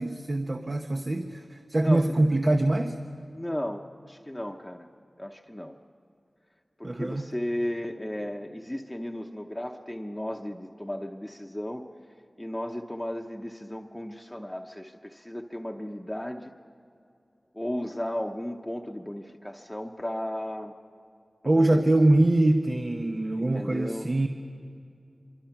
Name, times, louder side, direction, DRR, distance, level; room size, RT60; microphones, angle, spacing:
voice 1, 0.0-3.0 6.8-7.3 21.4-24.3, right 1 dB, 50° right, 5 dB, 1.0 m, -24 dB
voice 2, 1.8-2.2 3.3-4.9 5.2-5.8 6.8-11.8 12.4-16.5 17.5-20.7 21.6-21.8 23.4-24.3, left 1 dB, 15° left, 2 dB, 1.0 m, -35 dB
24.5 x 24.5 x 6.0 m, 2.6 s
wide cardioid pair, 50°, 0 cm